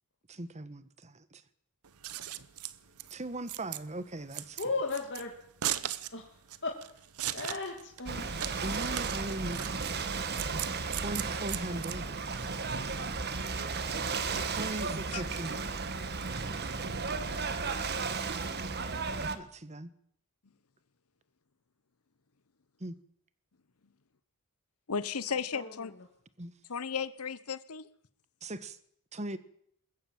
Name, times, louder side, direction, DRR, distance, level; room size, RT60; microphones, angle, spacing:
voice 1, 0.3-1.4 3.1-4.6 8.6-10.0 11.0-12.1 14.5-15.5 19.3-19.9 22.8-23.0 26.4-26.5 28.4-28.8 29.1-29.4, right 1 dB, 30° right, 1.3 m, -39 dB
Scissors, 1.8-12.4, right 12 dB, 80° right, 0.9 m, -38 dB
voice 2, 4.6-5.3 6.1-6.3 6.6-6.7 7.3-8.3 17.2-17.6 25.5-25.7, left 3 dB, 55° left, 2.4 m, -35 dB
Ocean / Boat Water vehicle, 8.1-19.4, right 4 dB, 45° right, 1.5 m, -34 dB
voice 3, 24.9-25.9 26.7-27.9, left 6 dB, 80° left, 1.0 m, -35 dB
21.0 x 14.0 x 8.8 m
head